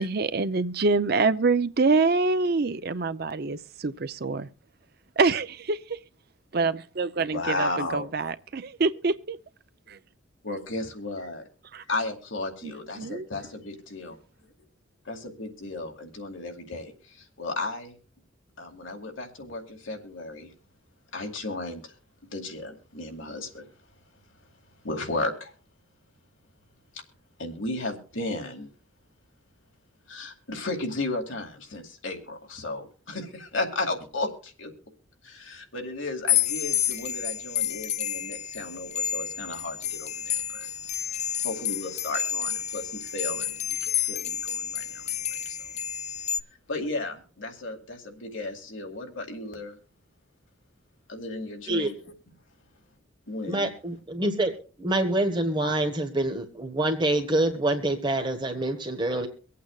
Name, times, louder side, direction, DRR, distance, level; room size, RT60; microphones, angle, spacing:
voice 1, 0.0-4.5 5.2-6.0 6.5-9.4 9.9-10.0 11.7-11.8 12.6-13.3, right 3 dB, 50° right, 0.6 m, -26 dB
voice 2, 7.2-8.1 10.4-11.4 11.9-14.2 15.0-17.9 18.6-20.5 21.1-21.9 22.3-23.7 24.8-25.5 27.4-28.7 30.1-34.7 35.2-40.7 41.3-45.6 46.7-49.8 51.1-51.9 53.3-53.7, left 2 dB, 75° left, 2.3 m, -34 dB
sound 1, 36.3-46.4, left 9 dB, 35° left, 0.4 m, -30 dB
voice 3, 53.5-54.5 54.8-59.3, right 1 dB, 25° right, 1.2 m, -26 dB
24.0 x 8.5 x 2.4 m
head